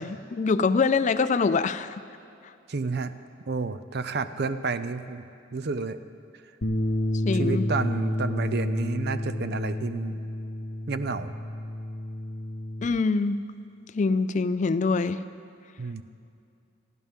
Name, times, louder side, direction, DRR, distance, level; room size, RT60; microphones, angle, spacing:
voice 1, 0.0-2.0 7.2-7.7 12.8-13.4 13.9-15.2, left 4 dB, 40° left, 13 dB, 0.4 m, -24 dB
voice 2, 2.7-3.1 3.5-5.2 5.5-6.0 7.3-10.2 10.9-11.3 15.8-16.0, right 4 dB, 55° right, 11 dB, 0.6 m, -30 dB
Bass guitar, 6.6-12.9, left 1 dB, 55° left, 0.9 m, -30 dB
28.5 x 10.5 x 3.7 m, 2.5 s
head